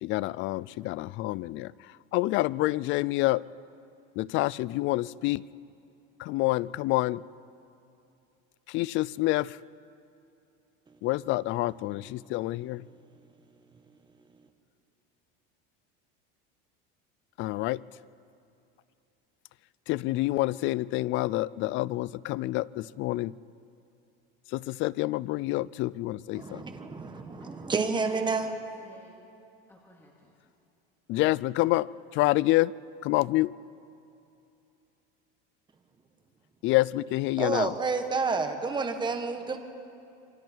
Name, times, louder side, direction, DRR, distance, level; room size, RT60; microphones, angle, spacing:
voice 1, 0.0-1.7 2.1-3.4 4.2-5.4 6.2-7.2 8.7-9.6 11.0-12.8 17.4-17.8 19.9-23.3 24.5-26.6 31.1-31.9 32.1-32.7 33.0-33.5 36.6-37.7, left 18 dB, 45° left, 21 dB, 0.4 m, -27 dB
voice 2, 26.3-28.5 37.4-39.6, right 4 dB, 15° right, 6 dB, 1.6 m, -29 dB
voice 3, 27.2-28.1 28.4-29.1 29.7-30.3, left 1 dB, 10° left, -3 dB, 2.4 m, -56 dB
27.5 x 24.0 x 4.6 m, 2.7 s
supercardioid pair, 135°, 29 cm